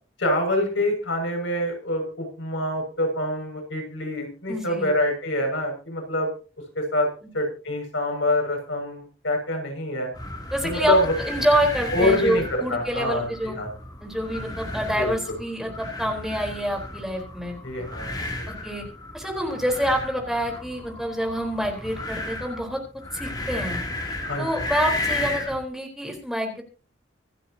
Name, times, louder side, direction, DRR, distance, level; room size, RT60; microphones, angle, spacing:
voice 1, 0.2-6.3 6.7-7.1 7.3-10.1 10.6-11.1 11.9-13.7 14.9-15.4 17.6-18.3 18.6-18.7 24.2-24.6, left 1 dB, 90° left, 2 dB, 6.7 m, -26 dB
voice 2, 4.5-4.9 7.2-7.3 10.5-10.9 11.2-13.6 14.0-17.6 18.6-18.8 19.1-22.8 23.1-23.8 24.4-26.6, equal, ahead, 1 dB, 4.2 m, -27 dB
sound 1, 10.1-25.6, left 2 dB, 20° left, 3.0 m, -34 dB
26.0 x 9.7 x 2.9 m, 0.36 s
head